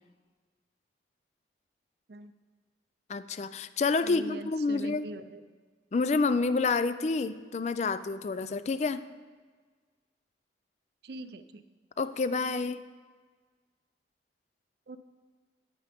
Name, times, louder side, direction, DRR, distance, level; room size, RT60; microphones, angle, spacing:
voice 1, 3.1-5.1 5.9-9.0 12.0-12.8, left 4 dB, 40° left, 13 dB, 0.3 m, -28 dB
voice 2, 4.0-5.4 11.0-11.6 14.9-15.0, right 2 dB, 60° right, 11 dB, 0.5 m, -42 dB
9.8 x 9.5 x 3.5 m, 1.5 s
head